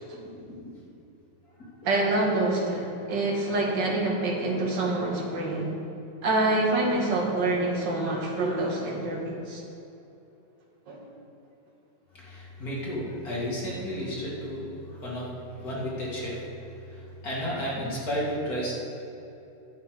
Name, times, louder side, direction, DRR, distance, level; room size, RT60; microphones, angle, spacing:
voice 1, 1.8-5.7 6.2-9.6 10.9-11.1, right 2 dB, 80° right, -1 dB, 2.2 m, -26 dB
voice 2, 12.1-14.6 14.9-16.4 16.9-18.7, equal, 55° left, -6 dB, 2.8 m, -32 dB
11.0 x 8.0 x 4.9 m, 2.9 s
omnidirectional pair, 1.9 m